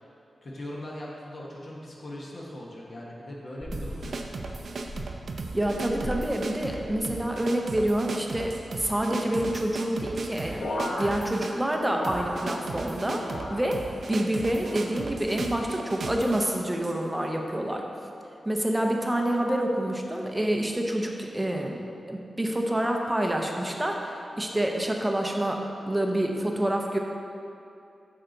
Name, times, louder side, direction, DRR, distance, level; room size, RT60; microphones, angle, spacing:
voice 1, 0.4-4.7, left 1 dB, 40° left, -4 dB, 1.0 m, -40 dB
sound 1, 3.6-10.9, equal, 20° left, 1.5 m, -43 dB
sound 2, 3.7-17.0, right 3 dB, 55° right, 0.5 m, -36 dB
voice 2, 5.5-17.8 18.5-21.8 22.1-27.0, right 1 dB, 10° right, 1 dB, 0.7 m, -27 dB
sound 3, 10.6-12.8 13.1-14.0 14.5-15.2 15.8-16.2 17.1-17.5 18.4-18.7, left 1 dB, 85° left, 1.3 m, -36 dB
9.0 x 6.5 x 3.9 m, 2.6 s
wide cardioid pair, 170°, 0 cm